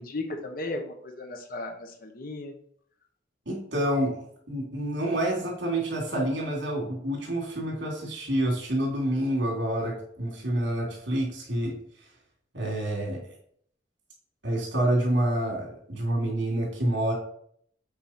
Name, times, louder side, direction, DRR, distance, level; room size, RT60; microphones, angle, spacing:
voice 1, 0.0-2.5, left 2 dB, 50° left, 4 dB, 1.1 m, -35 dB
voice 2, 3.5-11.7 12.5-13.2 14.4-17.1, right 1 dB, 75° right, -1 dB, 2.9 m, -28 dB
7.8 x 4.5 x 4.3 m, 0.63 s
head